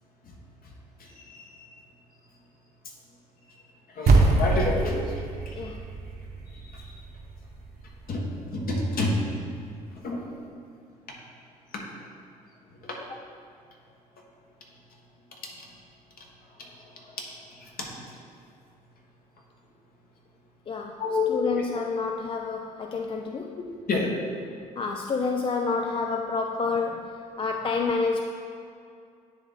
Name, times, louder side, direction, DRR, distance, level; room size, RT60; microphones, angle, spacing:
voice 1, 1.0-1.7 3.5-3.6 3.9-5.6 6.5-6.9 8.1-9.4 9.9-10.3 11.7-11.8 12.8-13.0 16.6-17.2 17.5-18.1 21.0-21.6 23.6-24.1, left 3 dB, 50° left, -1 dB, 1.4 m, -30 dB
sound 1, 4.1-8.6, right 3 dB, 55° right, 1.1 m, -25 dB
voice 2, 20.7-21.0 21.3-23.6 24.8-28.2, left 4 dB, 30° left, 2 dB, 0.5 m, -29 dB
9.4 x 3.5 x 4.0 m, 2.3 s
hypercardioid pair, 55°, 19 cm